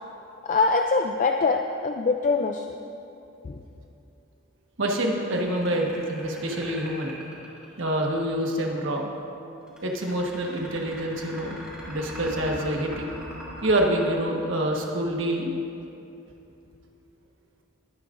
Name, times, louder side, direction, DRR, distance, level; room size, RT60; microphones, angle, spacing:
voice 1, 0.4-2.7 3.4-3.6, left 4 dB, 35° left, 3 dB, 0.4 m, -23 dB
voice 2, 4.8-7.1 7.8-9.1 9.8-11.6 11.9-13.1 13.6-15.5, right 1 dB, 60° right, 0 dB, 1.3 m, -26 dB
sound 1, 5.1-8.2 9.7-15.2, equal, 5° right, 3.0 m, -41 dB
20.5 x 9.8 x 2.6 m, 2.8 s
head